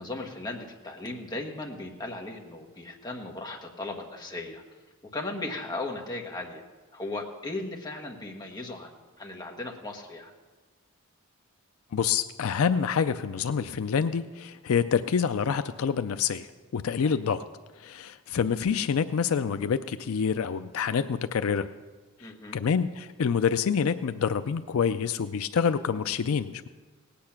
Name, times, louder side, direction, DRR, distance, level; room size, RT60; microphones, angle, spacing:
voice 1, 0.0-4.6 5.1-6.6 6.9-10.3 17.0-17.2 22.2-22.7, left 2 dB, 20° left, 0 dB, 1.3 m, -37 dB
voice 2, 11.9-16.5 16.7-17.4 17.8-21.7 22.5-26.7, left 6 dB, 70° left, 11 dB, 0.4 m, -27 dB
18.0 x 8.7 x 5.9 m, 1.3 s
head